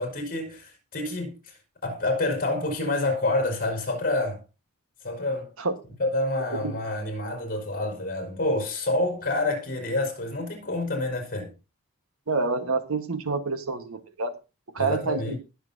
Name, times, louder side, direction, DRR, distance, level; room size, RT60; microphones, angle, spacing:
voice 1, 0.0-1.6 1.8-4.4 5.0-5.5 6.0-11.5 14.8-15.4, left 2 dB, 40° left, 4.7 m, -28 dB
voice 2, 12.3-14.3 14.7-15.4, right 3 dB, 70° right, 1.4 m, -27 dB
20.0 x 7.2 x 2.7 m
head